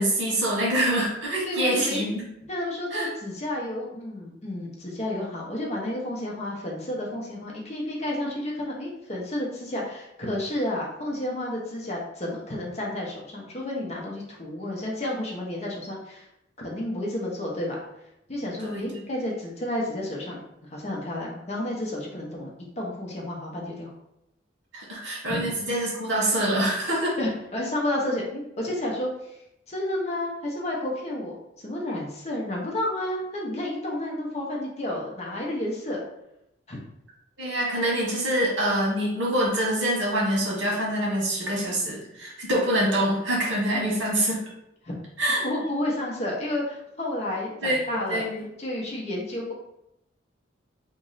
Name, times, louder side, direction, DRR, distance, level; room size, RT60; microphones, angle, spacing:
voice 1, 0.0-2.2 2.9-3.1 18.6-19.0 24.7-27.1 37.4-44.4 45.2-45.5 47.6-48.4, right 1 dB, 80° right, -3 dB, 1.3 m, -25 dB
voice 2, 1.4-2.0 2.5-16.3 16.6-17.8 18.3-20.4 20.7-22.5 22.8-23.9 25.3-25.5 27.2-29.4 29.7-36.0 36.7-36.8 43.7-43.8 44.8-45.0 45.4-48.2 48.6-49.5, left 1 dB, 35° left, -3 dB, 0.8 m, -31 dB
3.0 x 2.6 x 3.9 m, 0.83 s
head